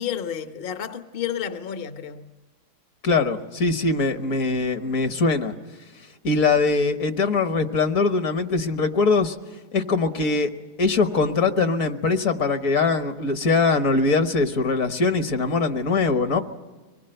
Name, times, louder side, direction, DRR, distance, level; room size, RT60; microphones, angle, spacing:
voice 1, 0.0-2.3, left 9 dB, 45° left, 0.9 m, -31 dB
voice 2, 3.0-5.5 6.2-9.4 9.7-10.5 10.8-16.4, left 4 dB, 60° left, 1.5 m, -22 dB
24.5 x 20.0 x 7.8 m
omnidirectional pair, 1.7 m